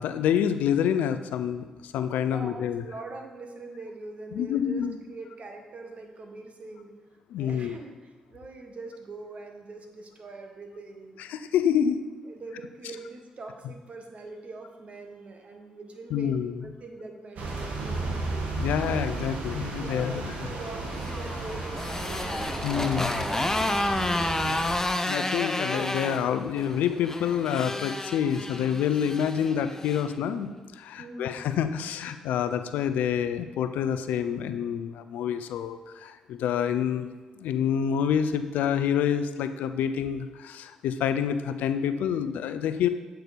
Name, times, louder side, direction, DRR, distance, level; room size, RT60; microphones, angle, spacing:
voice 1, 0.0-2.8 4.3-5.0 7.3-7.8 11.2-12.0 16.1-16.6 18.6-20.3 22.6-23.2 24.4-24.6 25.0-37.1 37.4-42.9, left 8 dB, 80° left, 10 dB, 0.4 m, -27 dB
voice 2, 2.3-6.9 7.3-11.2 12.2-16.4 16.6-18.5 18.9-23.2 31.0-31.3, right 3 dB, 50° right, 4 dB, 1.3 m, -43 dB
sound 1, 17.4-24.8, right 2 dB, 70° right, 1.2 m, -34 dB
Motorcycle, 20.7-30.1, left 1 dB, 15° left, 0.7 m, -31 dB
8.0 x 4.6 x 5.1 m, 1.3 s
supercardioid pair, 50°, 3 cm